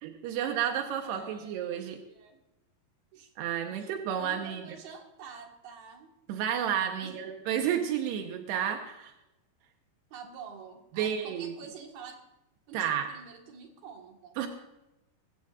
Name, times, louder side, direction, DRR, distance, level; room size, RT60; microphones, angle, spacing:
voice 1, 0.0-2.0 3.4-4.8 6.3-9.1 11.0-11.6 12.7-13.1 14.4-14.5, right 9 dB, 85° right, 4 dB, 3.1 m, -31 dB
voice 2, 1.0-2.4 3.1-3.3 3.8-6.1 7.0-7.4 10.1-12.2 12.7-14.4, right 6 dB, 70° right, 2 dB, 3.6 m, -48 dB
22.0 x 15.0 x 2.5 m, 0.92 s
omnidirectional pair, 4.7 m